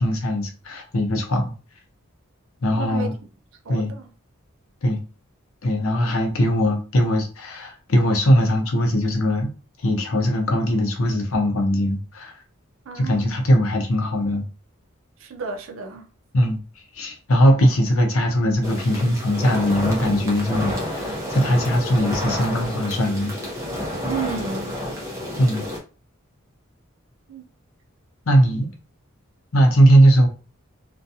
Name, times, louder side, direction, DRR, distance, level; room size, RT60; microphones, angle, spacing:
voice 1, 0.0-1.5 2.6-3.1 3.7-3.9 4.8-5.0 5.6-9.5 9.8-12.4 12.9-14.5 16.3-16.6 16.9-23.3 25.4-25.7 28.3-28.7 29.5-30.3, equal, 80° left, 0.7 m, -20 dB
voice 2, 2.8-3.1 3.7-4.1 12.9-13.3 15.2-16.1 24.0-24.8 27.3-27.5, right 6 dB, 70° right, 0.5 m, -32 dB
sound 1, 18.6-25.8, left 1 dB, 15° right, 0.7 m, -29 dB
2.5 x 2.2 x 2.7 m
head